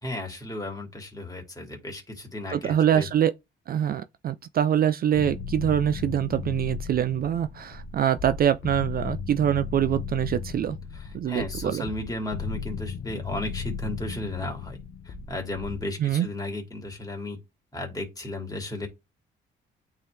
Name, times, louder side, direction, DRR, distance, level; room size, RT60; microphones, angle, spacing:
voice 1, 0.0-3.1 10.9-14.8 15.0-17.4 17.7-18.9, left 1 dB, 20° left, 2.5 m, -34 dB
voice 2, 2.5-3.3 3.7-10.8 11.1-11.9 16.0-16.3, right 10 dB, 50° right, 0.4 m, -24 dB
sound 1, 5.1-15.8, left 6 dB, 55° left, 0.8 m, -36 dB
9.0 x 3.7 x 3.3 m
cardioid pair, 90°, 20 cm